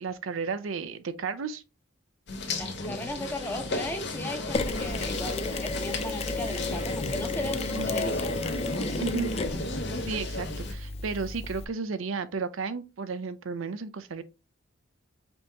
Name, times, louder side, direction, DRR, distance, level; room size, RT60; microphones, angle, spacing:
voice 1, 0.0-1.6 7.7-8.1 9.0-9.3 10.1-14.2, right 5 dB, 80° right, 0.5 m, -33 dB
sound 1, 2.3-10.7, left 2 dB, 55° left, 1.0 m, -34 dB
voice 2, 2.6-9.0, left 1 dB, 10° left, 0.9 m, -37 dB
Mechanisms, 4.5-11.7, left 3 dB, 30° left, 0.4 m, -33 dB
5.3 x 2.9 x 3.4 m
head